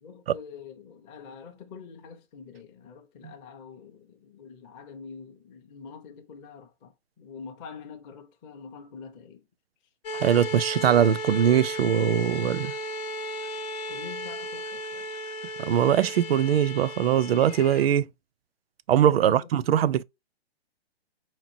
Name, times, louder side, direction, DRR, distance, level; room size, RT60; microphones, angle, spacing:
voice 1, 0.0-9.4 13.9-15.1 19.2-19.7, left 6 dB, 15° left, 0.4 m, -45 dB
sound 1, 10.0-17.9, equal, 35° left, 0.8 m, -35 dB
voice 2, 10.1-12.7 15.6-18.1 18.9-20.0, right 10 dB, 65° right, 0.5 m, -22 dB
5.0 x 3.0 x 2.7 m
hypercardioid pair, 130°, 33 cm